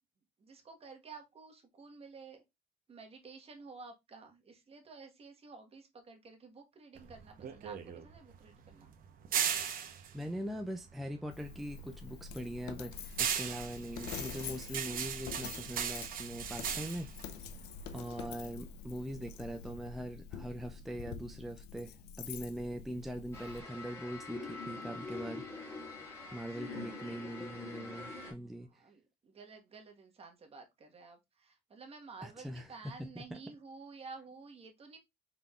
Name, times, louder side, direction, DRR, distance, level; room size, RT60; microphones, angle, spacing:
voice 1, 0.4-2.4 2.9-9.0 17.9-18.4 26.2-26.9 28.3-35.0, right 4 dB, 35° right, 1.4 m, -52 dB
sound 1, 7.0-11.5 11.8-18.2, right 8 dB, 60° right, 0.9 m, -38 dB
voice 2, 10.1-17.1 17.9-25.8 26.3-28.8 32.2-33.4, equal, ahead, 0.4 m, -42 dB
Coin (dropping), 11.3-23.6, left 7 dB, 80° left, 0.6 m, -46 dB
sound 2, 23.3-28.3, left 3 dB, 15° left, 2.6 m, -44 dB
5.5 x 3.7 x 2.4 m
cardioid pair, 110°, 17 cm